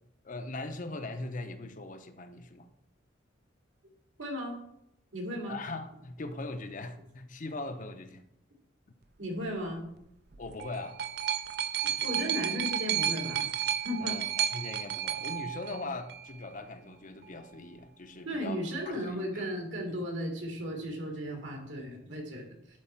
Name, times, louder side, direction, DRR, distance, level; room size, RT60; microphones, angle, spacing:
voice 1, 0.2-2.7 5.5-8.2 10.4-11.0 14.0-19.5, left 2 dB, 45° left, 8 dB, 0.7 m, -40 dB
voice 2, 4.2-4.6 5.1-5.6 9.2-9.8 11.8-13.5 13.8-14.1 18.3-22.8, equal, 80° right, 0 dB, 2.3 m, -35 dB
sound 1, 10.3-16.3 17.2-17.3, right 9 dB, 60° right, 0.5 m, -32 dB
11.0 x 4.3 x 4.4 m, 0.80 s
head